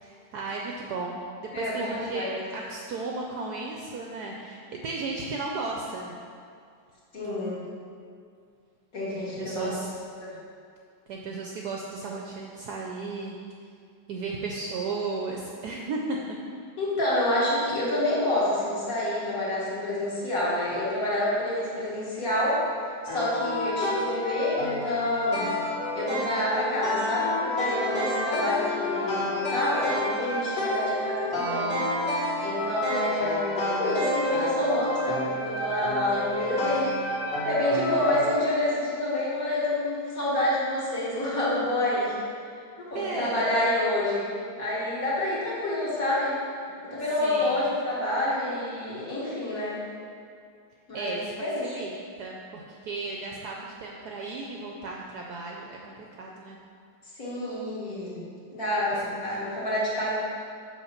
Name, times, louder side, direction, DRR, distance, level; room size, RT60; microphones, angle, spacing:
voice 1, 0.0-6.2 9.2-9.9 11.1-13.4 14.1-16.2 42.9-43.4 47.2-47.6 50.9-51.3 51.6-51.9 52.2-56.6 58.9-59.2, right 3 dB, 70° right, -1 dB, 1.0 m, -35 dB
voice 2, 7.1-7.6 8.9-9.7 10.2-10.3 16.8-22.6 23.0-25.5 25.9-31.7 32.4-37.0 37.5-42.2 42.5-44.3 44.6-46.3 46.8-49.8 50.9-51.7 57.1-58.2 58.5-60.2, left 1 dB, 45° left, -8 dB, 2.1 m, -28 dB
sound 1, 23.1-38.3, left 1 dB, 60° left, 2.2 m, -29 dB
6.2 x 4.9 x 5.8 m, 2.3 s
omnidirectional pair, 2.2 m